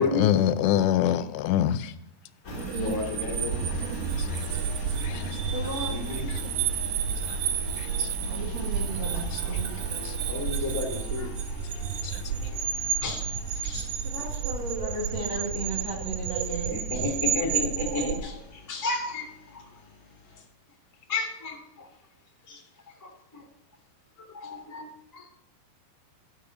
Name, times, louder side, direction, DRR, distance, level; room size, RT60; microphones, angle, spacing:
voice 1, 0.0-1.9 5.0-5.2, left 11 dB, 90° left, 2.8 m, -24 dB
Engine, 2.4-20.4, left 2 dB, 50° left, 1.0 m, -41 dB
sound 1, 2.5-18.2, right 8 dB, 80° right, 2.6 m, -31 dB
voice 2, 2.7-3.6 5.9-6.3 9.4-9.5 10.3-11.6 13.0-13.3 13.6-13.8 14.1-14.3 16.7-19.3 19.5-19.6 21.1-21.9 22.5-22.6 23.0-23.4 24.2-24.8 25.1-25.3, left 3 dB, 10° left, 1.0 m, -32 dB
voice 3, 5.5-6.0 8.3-9.7 14.0-16.8, right 2 dB, 45° right, 2.9 m, -35 dB
11.5 x 6.4 x 5.8 m
omnidirectional pair, 4.8 m